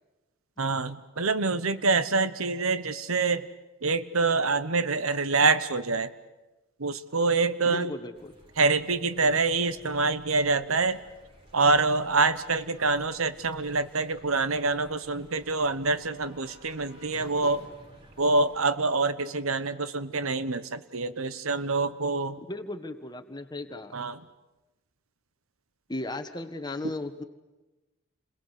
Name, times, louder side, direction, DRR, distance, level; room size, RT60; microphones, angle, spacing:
voice 1, 0.6-3.5 3.8-6.1 6.8-7.9 8.6-11.0 11.5-17.6 18.2-22.4 23.9-24.2, right 3 dB, 80° right, 13 dB, 1.1 m, -26 dB
voice 2, 7.6-8.4 22.5-23.9 25.9-27.2, left 1 dB, 20° left, 8 dB, 1.5 m, -36 dB
sound 1, 8.1-18.6, equal, 25° right, 4.3 m, -53 dB
29.5 x 22.0 x 8.3 m, 1.1 s
head